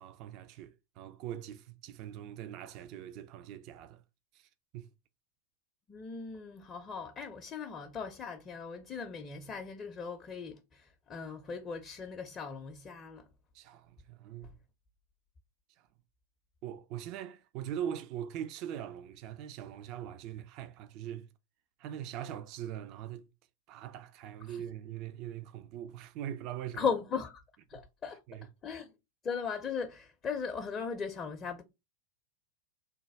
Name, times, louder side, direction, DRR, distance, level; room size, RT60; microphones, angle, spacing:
voice 1, 0.0-4.0 4.3-4.9 13.5-14.6 15.8-15.9 16.6-21.3 21.8-23.3 23.7-26.8 27.7-27.8 28.3-28.5, right 10 dB, 40° right, 0.3 m, -42 dB
voice 2, 5.9-13.3 24.5-24.6 26.8-27.4 27.7-28.2 28.6-28.9 29.2-31.6, left 6 dB, 25° left, 0.5 m, -38 dB
3.4 x 2.2 x 3.2 m
figure-of-eight pair, 90°, 0 cm